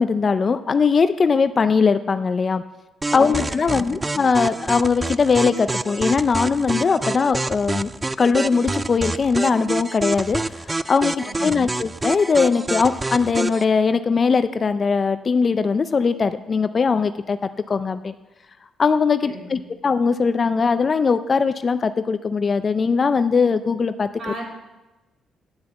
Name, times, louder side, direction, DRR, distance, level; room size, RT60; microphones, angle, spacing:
voice 1, 0.0-2.6 3.1-7.9 8.2-17.4 17.7-18.1 18.8-24.3, left 5 dB, 40° left, 11 dB, 0.4 m, -20 dB
sound 1, 3.0-13.6, right 2 dB, 20° right, 0.3 m, -27 dB
voice 2, 3.1-3.9 11.2-11.6 19.3-19.6 24.2-24.6, right 1 dB, 50° right, -1 dB, 3.5 m, -36 dB
9.8 x 6.6 x 8.2 m, 1.1 s
cardioid pair, 90°, 0 cm